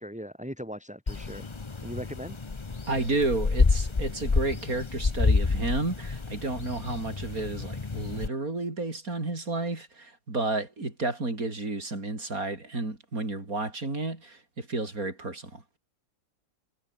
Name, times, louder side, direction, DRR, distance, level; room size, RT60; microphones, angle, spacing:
voice 1, 0.0-1.5 1.8-2.4, equal, 5° right, 8.0 m, -39 dB
sound 1, 1.1-8.3, left 4 dB, 30° left, 0.5 m, -28 dB
voice 2, 2.9-15.6, right 2 dB, 45° right, 5.2 m, -31 dB
omnidirectional pair, 2.0 m